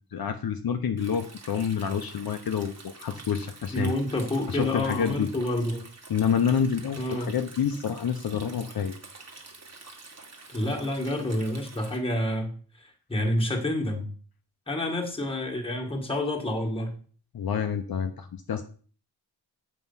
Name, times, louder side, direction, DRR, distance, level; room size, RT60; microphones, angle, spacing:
voice 1, 0.1-4.0 4.5-5.3 6.1-8.9 17.3-18.6, left 7 dB, 60° left, 6 dB, 0.8 m, -28 dB
Stream, 1.0-12.0, right 3 dB, 35° right, 1.6 m, -47 dB
voice 2, 3.7-5.9 7.0-7.3 10.5-14.1 14.7-16.9, left 1 dB, 15° left, 0 dB, 1.8 m, -29 dB
8.1 x 5.4 x 5.5 m, 0.42 s
wide cardioid pair, 150°, 42 cm